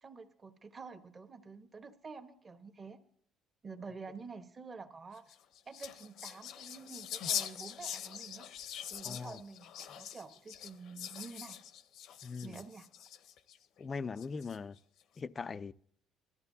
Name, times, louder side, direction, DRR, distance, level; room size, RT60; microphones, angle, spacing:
voice 1, 0.0-3.0 3.6-5.3 5.7-8.5 8.9-11.6 12.4-12.9, right 4 dB, 30° right, 1.2 m, -49 dB
sound 1, 5.2-13.6 14.2-14.8, left 10 dB, 65° left, 0.8 m, -42 dB
voice 2, 9.0-9.4 12.2-12.6 13.8-14.8 15.2-15.7, left 5 dB, 25° left, 0.4 m, -40 dB
21.0 x 13.5 x 2.7 m
cardioid pair, 130°, 0 cm